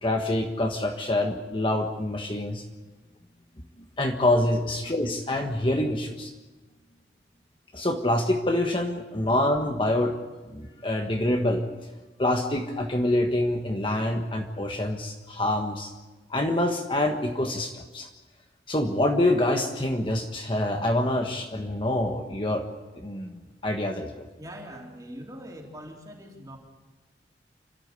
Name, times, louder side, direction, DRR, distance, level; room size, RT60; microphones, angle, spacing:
voice 1, 0.0-2.6 4.0-6.3 7.7-10.1 10.5-11.7 12.2-15.9 16.3-18.1 18.7-22.7 23.0-24.2, left 1 dB, 30° left, 3 dB, 1.5 m, -26 dB
voice 2, 24.4-26.6, equal, 20° right, -1 dB, 3.7 m, -42 dB
29.0 x 13.0 x 8.4 m, 1.2 s
head